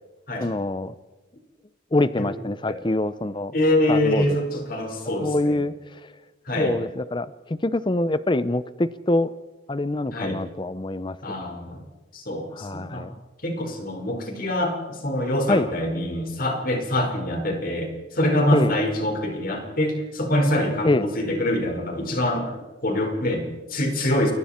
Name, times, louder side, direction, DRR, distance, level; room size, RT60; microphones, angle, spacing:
voice 1, 0.4-0.9 1.9-3.5 3.9-4.2 5.2-5.7 6.6-7.3 7.6-9.3 9.7-11.2 12.6-13.2 15.5-15.7 18.5-18.7 20.8-21.1, left 2 dB, 25° left, 15 dB, 0.6 m, -24 dB
voice 2, 3.5-5.6 6.4-6.8 10.1-10.4 11.2-11.8 12.1-13.1 13.4-22.5 22.8-24.3, left 1 dB, 45° left, 3 dB, 4.9 m, -25 dB
29.0 x 22.0 x 4.4 m, 1.2 s
head